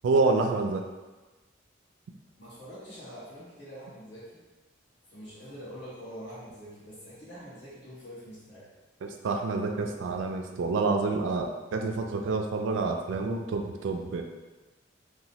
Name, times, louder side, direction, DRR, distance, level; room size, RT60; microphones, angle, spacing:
voice 1, 0.0-0.8 9.0-14.2, right 3 dB, 85° right, 4 dB, 0.3 m, -28 dB
voice 2, 2.4-4.4 5.1-8.7, equal, 60° left, -10 dB, 1.3 m, -45 dB
3.0 x 2.1 x 2.8 m, 1.2 s
head